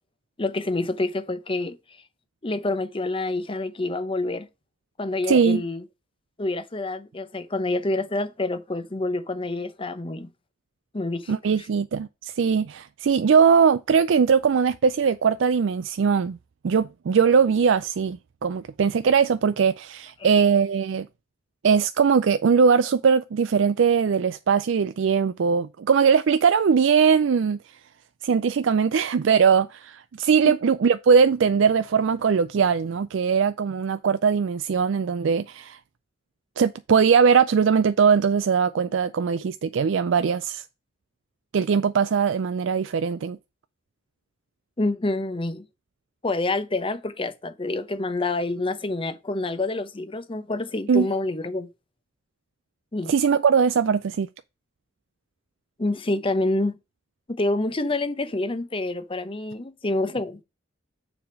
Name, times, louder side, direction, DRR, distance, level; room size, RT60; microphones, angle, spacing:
voice 1, 0.4-1.8 2.4-4.5 5.0-5.8 6.4-10.3 10.9-11.3 20.2-20.3 44.8-45.7 46.2-51.7 52.9-53.1 55.8-56.8 57.3-60.4, left 2 dB, 25° left, 0.7 m, -27 dB
voice 2, 5.3-5.6 11.3-16.4 16.6-21.1 21.6-27.6 28.2-35.8 36.6-40.6 41.5-43.4 50.9-51.1 53.1-54.3, right 6 dB, 65° right, 0.4 m, -20 dB
7.0 x 3.5 x 6.1 m
head